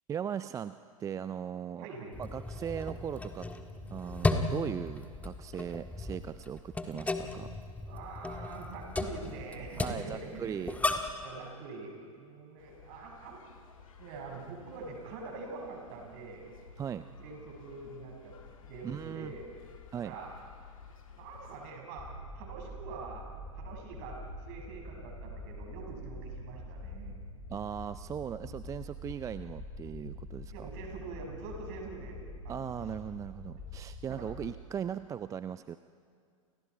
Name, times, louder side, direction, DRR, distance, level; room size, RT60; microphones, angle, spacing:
voice 1, 0.1-1.9 2.2-3.5 3.9-7.5 9.8-10.8 16.8-17.0 18.8-19.3 19.9-20.1 27.5-30.7 32.5-35.8, right 8 dB, 20° right, 13 dB, 0.5 m, -38 dB
voice 2, 1.8-2.2 7.9-10.6 11.2-13.4 14.0-16.5 17.2-18.4 18.6-19.5 20.0-20.3 21.1-27.1 28.4-28.5 30.5-32.7 33.6-33.7 34.1-34.2, right 4 dB, 45° right, 1 dB, 6.8 m, -45 dB
sound 1, 2.1-11.2, left 2 dB, 10° left, 1.7 m, -35 dB
sound 2, 12.6-21.7, left 5 dB, 70° left, 2.8 m, -54 dB
sound 3, 22.0-34.5, left 1 dB, 30° left, 5.4 m, -45 dB
29.5 x 28.5 x 4.8 m, 2.3 s
figure-of-eight pair, 95°, 18 cm